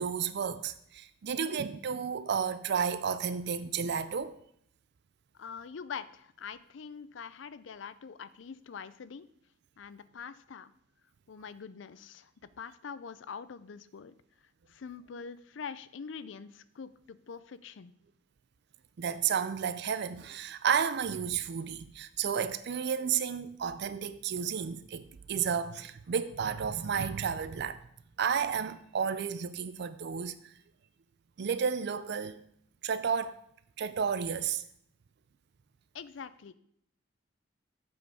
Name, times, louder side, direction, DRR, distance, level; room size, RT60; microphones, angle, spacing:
voice 1, 0.0-4.3 19.0-27.8 28.2-30.5 31.4-32.4 32.8-33.3 33.8-34.6, right 7 dB, 60° right, 0.4 m, -32 dB
voice 2, 5.4-9.3 9.8-10.7 11.3-12.3 12.6-14.1 14.7-17.9 35.9-36.5, left 6 dB, 70° left, 0.5 m, -44 dB
7.9 x 5.3 x 4.8 m
head